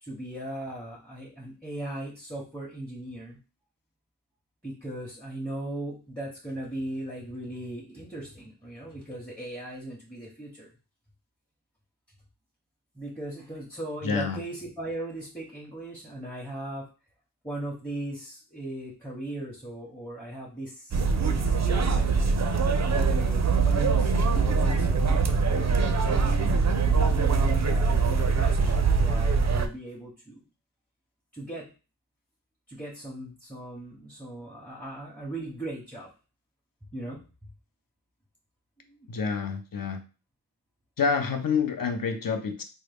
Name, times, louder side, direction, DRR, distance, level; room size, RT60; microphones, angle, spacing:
voice 1, 0.0-3.4 4.6-10.7 12.9-16.9 17.4-22.1 22.8-26.6 26.9-30.4 31.3-31.7 32.7-36.1 36.9-37.2 38.8-39.1, right 1 dB, 5° left, -5 dB, 0.9 m, -38 dB
voice 2, 14.0-14.4 39.1-40.0 41.0-42.6, left 5 dB, 55° left, 7 dB, 0.6 m, -28 dB
sound 1, 20.9-29.7, right 4 dB, 45° right, 0.4 m, -23 dB
3.6 x 2.0 x 3.4 m, 0.33 s
wide cardioid pair, 55°, 40 cm